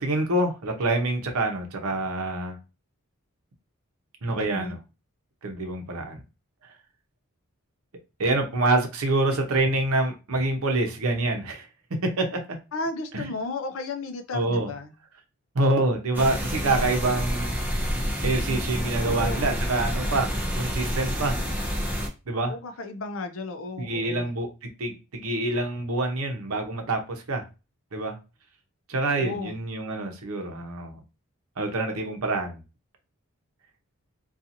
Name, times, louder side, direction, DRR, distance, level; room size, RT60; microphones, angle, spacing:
voice 1, 0.0-2.6 4.2-4.8 5.4-6.2 8.2-11.7 12.0-12.4 13.1-13.3 14.3-14.7 15.5-17.5 18.2-20.3 20.6-21.4 22.3-22.5 23.8-27.4 27.9-28.2 28.9-31.0 31.6-32.6, right 2 dB, 80° right, 0.7 m, -26 dB
voice 2, 4.4-4.7 12.7-14.9 19.0-19.5 22.5-24.3 29.2-29.5, left 3 dB, 65° left, 0.5 m, -34 dB
sound 1, 16.1-22.1, equal, 10° right, 0.5 m, -28 dB
2.7 x 2.4 x 2.5 m
head